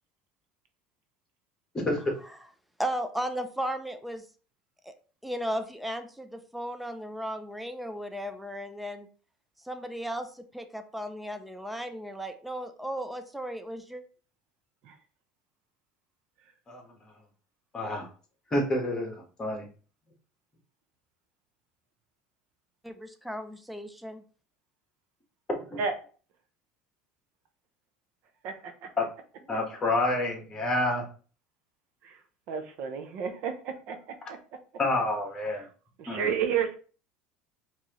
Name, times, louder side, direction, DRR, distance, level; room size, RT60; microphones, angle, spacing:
voice 1, 2.8-4.3 4.8-4.9 5.2-9.1 9.6-14.0 22.8-24.2, equal, ahead, 7 dB, 0.5 m, -35 dB
voice 2, 17.7-18.1 18.5-19.1 19.4-19.6 25.5-25.8 29.0-29.1 29.5-31.0 34.8-35.6 36.1-36.2, left 2 dB, 20° left, 1 dB, 1.5 m, -28 dB
voice 3, 28.4-28.9 32.0-34.4 35.5-35.7 36.0-36.7, right 7 dB, 60° right, 6 dB, 0.8 m, -32 dB
4.5 x 2.8 x 3.1 m, 0.39 s
supercardioid pair, 125°, 3 cm